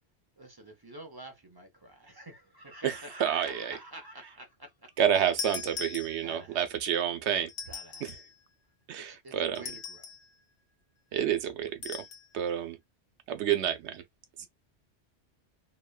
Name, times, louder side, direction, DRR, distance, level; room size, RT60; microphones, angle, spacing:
voice 1, 0.4-5.0 6.2-6.8 7.7-8.2 9.0-10.1 14.4-14.5, right 1 dB, 30° right, 0.5 m, -48 dB
voice 2, 2.8-3.8 5.0-7.5 8.0-8.1 8.9-9.6 11.1-12.0 12.3-12.8 13.3-14.0 14.4-14.5, right 9 dB, 85° right, 0.9 m, -29 dB
sound 1, 5.4-6.5 7.5-8.3 9.6-10.3 11.8-12.3, left 6 dB, 70° left, 0.9 m, -40 dB
3.0 x 2.2 x 2.2 m
omnidirectional pair, 1.1 m